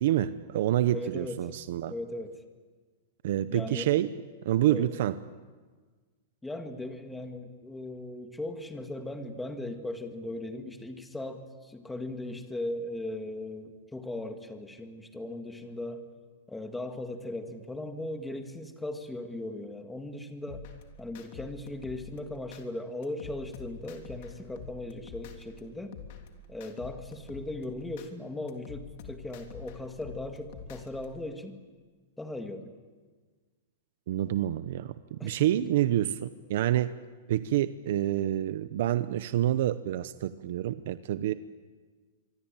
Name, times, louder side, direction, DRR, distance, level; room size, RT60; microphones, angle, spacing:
voice 1, 0.0-1.9 3.2-4.1 4.4-5.2 34.1-36.9 37.3-41.3, right 13 dB, 60° right, 13 dB, 0.8 m, -27 dB
voice 2, 0.9-1.4 1.9-2.4 3.5-3.9 4.7-4.9 6.4-16.0 16.5-20.7 21.0-26.0 26.5-31.6 32.2-32.8 35.2-35.5, left 1 dB, 5° left, 6 dB, 1.9 m, -38 dB
sound 1, 20.5-22.6 23.0-25.6 25.9-28.1 28.5-31.0, left 6 dB, 50° left, 3.3 m, -46 dB
25.0 x 24.5 x 9.0 m, 1.4 s
supercardioid pair, 160°, 0 cm